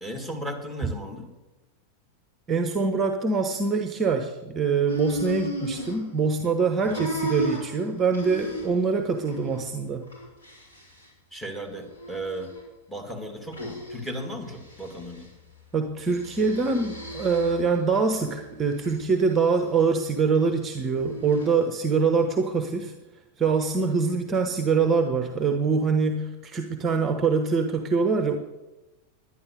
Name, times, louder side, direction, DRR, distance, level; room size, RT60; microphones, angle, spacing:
voice 1, 0.0-1.3 6.9-7.1 11.3-12.5 12.9-15.3, equal, 5° left, 2 dB, 2.2 m, -35 dB
voice 2, 2.5-10.1 15.7-22.9 23.4-28.4, right 4 dB, 20° right, 6 dB, 0.9 m, -24 dB
sound 1, 4.9-6.5 6.8-8.9 9.2-9.6 10.0-11.1 11.8-12.6 13.5-14.1 14.5-15.2 16.1-17.7 18.2-19.0 20.8-21.5, right 1 dB, 70° left, 4.6 m, -35 dB
11.0 x 10.0 x 6.4 m, 1.0 s
figure-of-eight pair, 90°, 0 cm